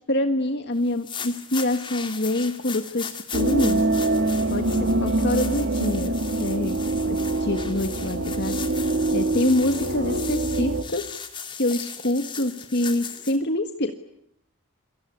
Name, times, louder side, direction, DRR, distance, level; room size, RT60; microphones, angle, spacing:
voice 1, 0.1-3.8 4.5-4.7 5.0-6.8 7.0-8.6 9.1-11.2 11.5-13.9, left 1 dB, 50° left, 7 dB, 1.6 m, -26 dB
sound 1, 0.8-13.4, left 6 dB, 20° left, 2.5 m, -38 dB
sound 2, 3.3-10.8, right 2 dB, 50° right, 2.6 m, -24 dB
28.5 x 23.5 x 8.6 m, 0.76 s
head